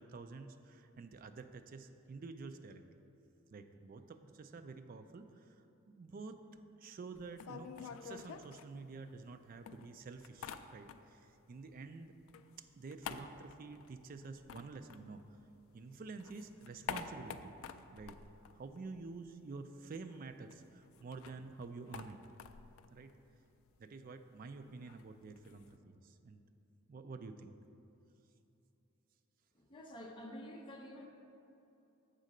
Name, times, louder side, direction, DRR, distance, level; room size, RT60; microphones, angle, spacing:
voice 1, 0.0-2.8 3.5-5.6 5.9-12.1 12.8-15.4 15.7-17.6 17.9-18.2 18.5-22.2 22.9-23.1 23.8-26.4 26.9-27.6, right 4 dB, 40° right, 8 dB, 0.3 m, -49 dB
sound 1, 7.1-9.3 9.7-11.3 11.6-15.7 16.0-19.3 19.6-19.7 19.9-25.7, left 6 dB, 70° left, 0.3 m, -49 dB
voice 2, 29.5-31.1, equal, 20° left, -1 dB, 0.6 m, -49 dB
7.3 x 3.8 x 6.5 m, 2.9 s
head